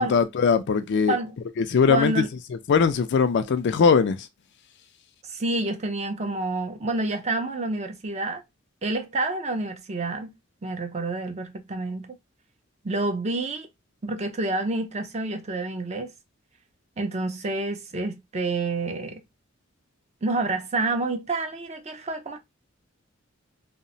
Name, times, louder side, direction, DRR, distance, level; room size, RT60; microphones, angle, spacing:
voice 1, 0.0-1.2 1.6-2.2 2.7-4.2, left 5 dB, 55° left, 0.3 m, -20 dB
voice 2, 1.9-2.3 5.3-8.4 8.8-10.3 10.6-12.2 12.8-13.7 14.0-16.1 17.0-19.2 20.2-22.4, right 2 dB, 30° right, 0.5 m, -28 dB
2.8 x 2.0 x 2.6 m
head